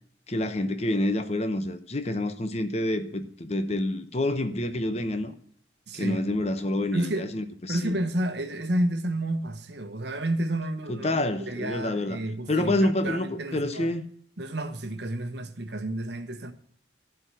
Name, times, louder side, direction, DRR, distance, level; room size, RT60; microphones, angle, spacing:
voice 1, 0.3-5.3 5.9-7.9 10.9-12.2 12.5-14.1, left 1 dB, 35° left, 0.9 m, -28 dB
voice 2, 5.9-6.2 6.9-7.3 7.7-13.9 14.4-16.5, right 1 dB, 60° right, 1.1 m, -30 dB
11.5 x 4.8 x 7.6 m
head